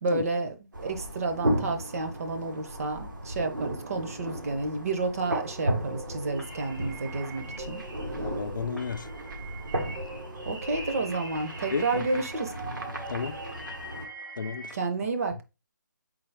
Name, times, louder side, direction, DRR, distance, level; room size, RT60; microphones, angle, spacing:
voice 1, 0.0-7.8 10.5-12.5 14.7-15.4, right 3 dB, 50° right, 0.8 m, -30 dB
sound 1, 0.7-14.1, right 1 dB, 85° right, 1.5 m, -35 dB
sound 2, 5.2-14.7, right 2 dB, 5° right, 0.5 m, -43 dB
voice 2, 8.1-9.1 11.7-12.1 13.1-13.4 14.4-14.7, left 5 dB, 80° left, 0.5 m, -32 dB
3.9 x 2.7 x 4.7 m
figure-of-eight pair, 160°, 10 cm